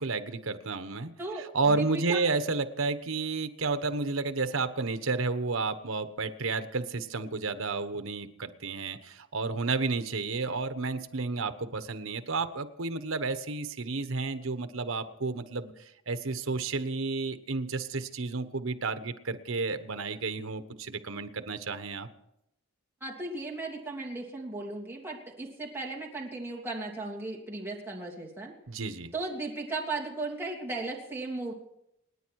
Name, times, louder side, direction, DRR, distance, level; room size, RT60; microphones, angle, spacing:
voice 1, 0.0-1.1 1.4-22.1 28.7-29.1, right 3 dB, 80° right, 10 dB, 1.2 m, -31 dB
voice 2, 1.2-2.2 23.0-28.5 29.1-31.5, right 2 dB, 10° right, -2 dB, 3.1 m, -36 dB
27.5 x 10.0 x 4.7 m, 0.81 s
head